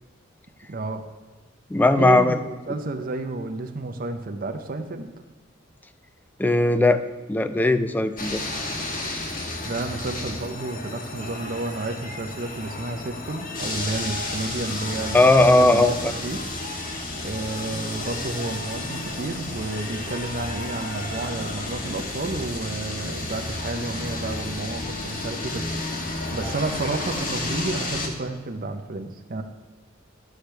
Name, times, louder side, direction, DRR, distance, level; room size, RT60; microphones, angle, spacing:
voice 1, 0.7-1.0 2.0-5.1 9.6-16.4 17.2-29.4, right 2 dB, 50° right, 7 dB, 0.6 m, -31 dB
voice 2, 1.7-2.4 6.4-7.0 7.3-8.4 15.1-16.1, left 2 dB, 10° left, 10 dB, 0.3 m, -18 dB
sound 1, 8.2-28.1, left 2 dB, 45° left, 1.2 m, -32 dB
11.5 x 6.5 x 3.3 m, 1.3 s
head